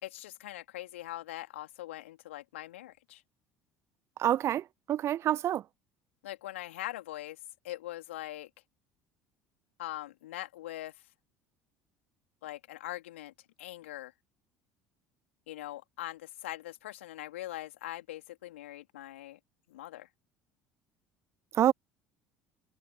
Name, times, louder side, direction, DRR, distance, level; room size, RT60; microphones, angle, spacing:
voice 1, 0.0-3.2 6.2-7.4 7.6-8.5 9.8-11.0 12.4-13.3 13.6-14.1 15.5-19.4 19.7-20.1, left 15 dB, 70° left, 3.4 m, -42 dB
voice 2, 4.2-5.6 21.5-21.7, right 11 dB, 40° right, 0.4 m, -27 dB
figure-of-eight pair, 60°, 7 cm